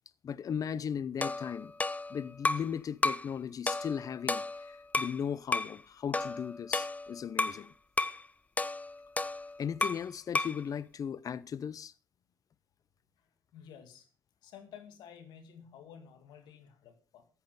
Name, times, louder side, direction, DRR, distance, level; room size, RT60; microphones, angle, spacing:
voice 1, 0.2-1.7 2.1-7.7 9.6-11.9, left 7 dB, 55° left, 0.8 m, -37 dB
sound 1, 1.2-2.7 3.0-3.3 3.7-5.2 5.5-5.8 6.1-7.6 8.0-8.2 8.6-10.1 10.3-10.6, left 2 dB, 20° left, 0.8 m, -32 dB
voice 2, 13.5-14.1 14.4-17.3, left 8 dB, 75° left, 2.1 m, -52 dB
14.0 x 8.3 x 5.3 m
supercardioid pair, 55°, 7 cm